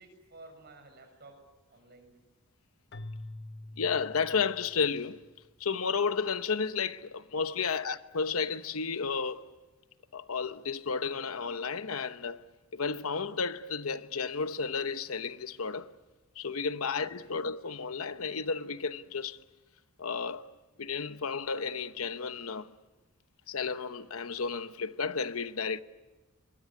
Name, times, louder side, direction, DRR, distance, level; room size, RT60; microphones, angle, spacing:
voice 1, 0.0-1.3 1.7-2.2 10.3-10.4 16.8-17.3, right 2 dB, 50° right, 7.1 m, -54 dB
Keyboard (musical), 2.9-5.2, left 1 dB, 55° left, 1.1 m, -45 dB
voice 2, 3.8-5.2 5.6-9.5 10.1-12.4 12.7-15.9 16.4-19.4 20.0-20.5 20.8-22.7 23.5-25.8, left 5 dB, 85° left, 1.0 m, -32 dB
23.5 x 22.0 x 9.7 m
head